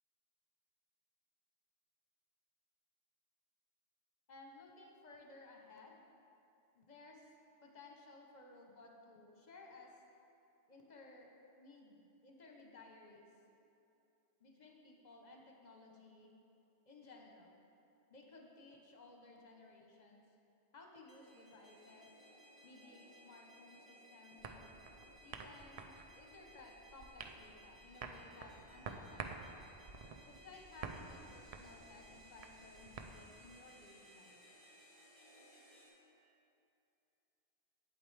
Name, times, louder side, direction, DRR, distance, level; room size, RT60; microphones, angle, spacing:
voice 1, 4.3-6.0 6.7-7.3 7.6-9.9 10.7-11.3 11.6-13.3 14.4-16.3 16.8-17.6 18.1-20.2 20.7-22.1 22.6-24.7 25.2-29.7 30.3-34.4, left 3 dB, 45° left, 1 dB, 0.9 m, -58 dB
sound 1, 21.1-35.9, equal, 20° right, 1.6 m, -61 dB
sound 2, 24.4-33.1, right 5 dB, 70° right, 0.3 m, -51 dB
8.5 x 7.8 x 3.2 m, 2.8 s
omnidirectional pair, 1.2 m